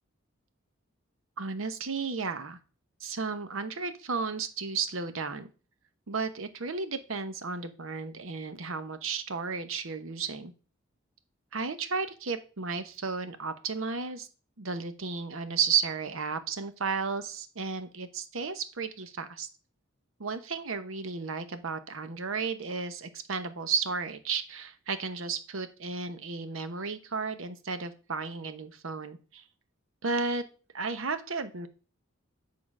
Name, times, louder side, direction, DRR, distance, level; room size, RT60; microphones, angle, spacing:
voice 1, 1.4-2.6 3.0-5.5 6.1-10.5 11.5-14.3 14.6-19.5 20.2-29.4 30.0-30.4 30.7-31.7, right 5 dB, 80° right, 10 dB, 0.9 m, -33 dB
8.6 x 3.8 x 6.0 m, 0.35 s
head